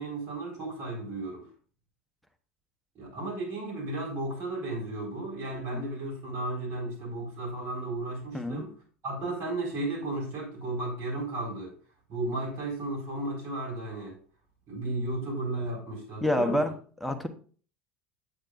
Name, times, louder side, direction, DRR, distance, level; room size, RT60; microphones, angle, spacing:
voice 1, 0.0-1.4 2.9-8.7 9.0-11.7 12.1-14.1 14.7-16.6, right 2 dB, 50° right, 4.6 m, -34 dB
voice 2, 16.2-16.7 17.0-17.3, left 1 dB, ahead, 1.0 m, -27 dB
8.6 x 8.2 x 2.5 m
hypercardioid pair, 75°, 6 cm